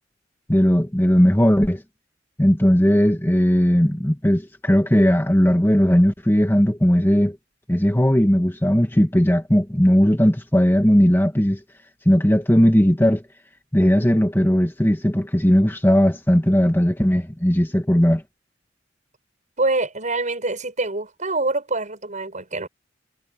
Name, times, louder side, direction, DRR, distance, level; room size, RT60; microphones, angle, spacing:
voice 1, 0.5-1.8 2.4-7.4 7.7-11.6 12.1-13.2 13.7-18.2, equal, 10° left, 1.8 m, -17 dB
voice 2, 19.6-22.7, right 2 dB, 40° right, 7.4 m, -25 dB
head